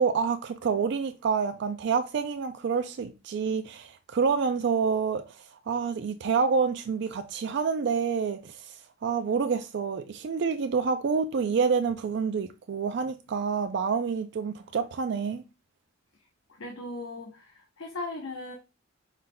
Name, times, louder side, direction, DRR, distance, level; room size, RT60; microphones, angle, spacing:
voice 1, 0.0-5.4 5.7-8.7 9.0-15.4, right 5 dB, 60° right, 0.4 m, -28 dB
voice 2, 16.5-18.5, left 2 dB, 85° left, 0.8 m, -38 dB
5.4 x 3.8 x 2.2 m
head